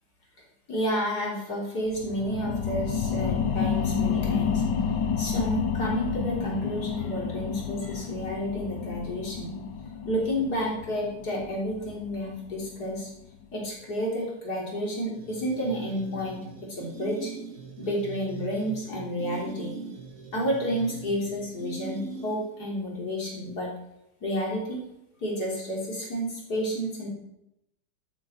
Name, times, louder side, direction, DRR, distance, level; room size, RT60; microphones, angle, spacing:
voice 1, 0.7-4.6 5.2-9.6 10.0-13.1 13.5-17.3 17.8-19.8 20.3-23.7 24.2-24.8 25.2-27.1, equal, 65° left, -3 dB, 3.9 m, -30 dB
sound 1, 1.8-13.0 13.4-13.5, left 6 dB, 90° left, 1.7 m, -30 dB
sound 2, 15.1-22.6, right 4 dB, 50° right, 1.8 m, -41 dB
13.5 x 8.7 x 4.4 m, 0.83 s
omnidirectional pair, 1.9 m